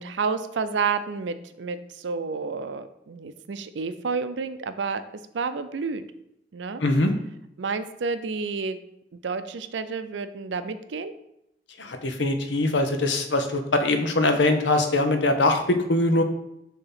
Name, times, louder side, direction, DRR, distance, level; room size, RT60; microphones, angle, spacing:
voice 1, 0.0-5.0 5.3-6.0 6.5-6.8 7.6-8.8 9.2-11.1, right 5 dB, 90° right, 11 dB, 0.5 m, -30 dB
voice 2, 6.8-7.1 11.8-16.2, left 2 dB, 90° left, 6 dB, 0.8 m, -22 dB
6.7 x 3.0 x 5.7 m, 0.81 s
head